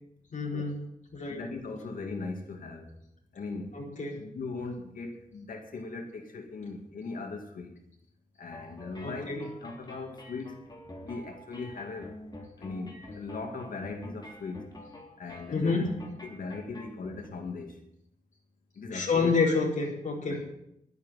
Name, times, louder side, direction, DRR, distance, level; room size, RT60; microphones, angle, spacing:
voice 1, 0.3-0.8 1.1-1.4 3.7-4.2 9.0-9.5 15.5-15.9 18.9-20.5, left 4 dB, 60° left, -3 dB, 4.6 m, -28 dB
voice 2, 1.2-2.9 3.3-3.8 4.2-7.7 8.4-10.6 11.0-12.1 12.6-14.7 15.2-15.9 16.2-17.8 18.8-19.6 20.2-20.5, left 3 dB, 80° left, 3 dB, 2.4 m, -39 dB
sound 1, 8.5-17.3, left 1 dB, 30° left, 3.4 m, -47 dB
12.0 x 9.5 x 9.2 m, 0.78 s
wide cardioid pair, 110°, 14 cm